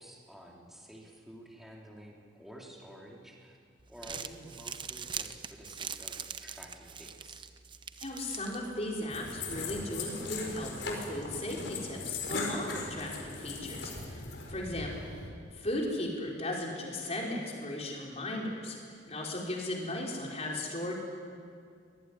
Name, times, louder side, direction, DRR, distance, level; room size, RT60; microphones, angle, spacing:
voice 1, 0.0-3.6 3.9-7.5 14.8-15.2, equal, ahead, -2 dB, 3.4 m, -51 dB
Crumpling crinkling, 3.8-9.1, right 7 dB, 25° right, 0.7 m, -42 dB
voice 2, 8.0-15.1 15.6-21.0, left 1 dB, 35° left, -2 dB, 4.9 m, -36 dB
sound 1, 9.1-15.3, left 3 dB, 65° left, 4.6 m, -39 dB
23.5 x 19.5 x 9.8 m, 2.2 s
head